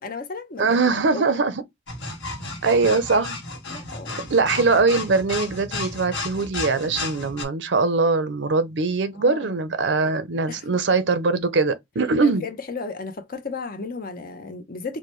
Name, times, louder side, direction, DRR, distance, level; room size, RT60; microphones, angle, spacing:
voice 1, 0.0-1.4 3.7-4.3 9.1-9.6 10.5-10.6 12.2-15.0, left 4 dB, 50° left, 0.7 m, -34 dB
voice 2, 0.6-1.6 2.6-3.4 4.3-12.4, right 4 dB, 70° right, 0.6 m, -21 dB
sound 1, 1.9-7.4, left 3 dB, 70° left, 1.3 m, -33 dB
4.7 x 2.1 x 3.0 m
head